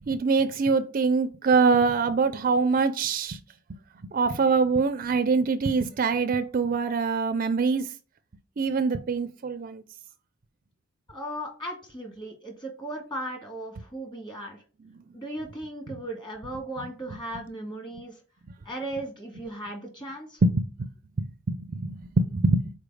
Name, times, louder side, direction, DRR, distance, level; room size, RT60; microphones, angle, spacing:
voice 1, 0.0-3.4 4.0-7.9 8.6-9.8 15.9-16.0 20.4-20.9 21.2-22.6, right 4 dB, 40° right, 0.4 m, -24 dB
voice 2, 11.1-14.6 15.1-18.2 18.6-20.4, right 1 dB, 20° left, 1.8 m, -37 dB
5.0 x 4.4 x 4.8 m
head